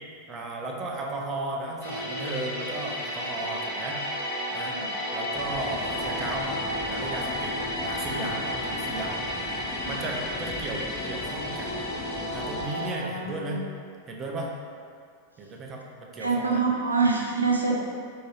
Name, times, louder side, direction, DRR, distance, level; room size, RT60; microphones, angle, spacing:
voice 1, 0.3-4.0 4.5-4.8 5.1-9.2 9.8-11.8 12.3-13.6 14.1-14.5 15.4-16.6, right 2 dB, 25° right, -1 dB, 0.5 m, -35 dB
sound 1, 1.8-12.9, equal, 55° left, 1.1 m, -32 dB
sound 2, 5.4-12.7, left 3 dB, 25° left, 0.4 m, -39 dB
voice 2, 12.7-13.6 16.2-17.9, right 4 dB, 80° right, -1 dB, 0.4 m, -27 dB
4.3 x 2.8 x 3.0 m, 2.2 s
figure-of-eight pair, 90°, 0 cm